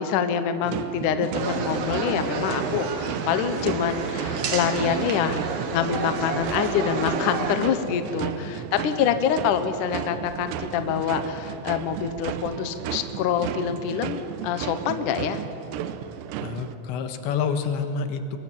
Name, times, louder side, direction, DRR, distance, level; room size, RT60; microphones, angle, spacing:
voice 1, 0.0-5.4 5.7-15.4, left 8 dB, 65° left, 9 dB, 2.1 m, -26 dB
sound 1, 0.6-16.8, right 10 dB, 85° right, 3.0 m, -34 dB
sound 2, 1.3-7.6, right 4 dB, 60° right, 3.3 m, -30 dB
voice 2, 8.1-8.5 16.4-18.4, left 6 dB, 85° left, 8 dB, 3.6 m, -29 dB
24.0 x 22.5 x 7.5 m, 2.9 s
omnidirectional pair, 5.1 m